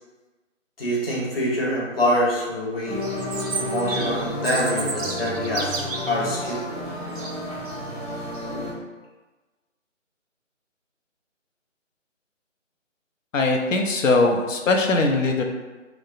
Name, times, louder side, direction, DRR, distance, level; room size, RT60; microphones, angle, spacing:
voice 1, 0.8-3.0 3.6-6.7, left 1 dB, 50° left, -5 dB, 0.8 m, -25 dB
sound 1, 2.9-8.7, left 1 dB, 30° right, 0.5 m, -31 dB
Chirp tweet, 3.2-6.2, right 4 dB, 80° right, 0.5 m, -31 dB
voice 2, 13.3-15.4, left 3 dB, 75° left, 3 dB, 0.6 m, -20 dB
2.8 x 2.0 x 2.5 m, 1.2 s
figure-of-eight pair, 165°, 39 cm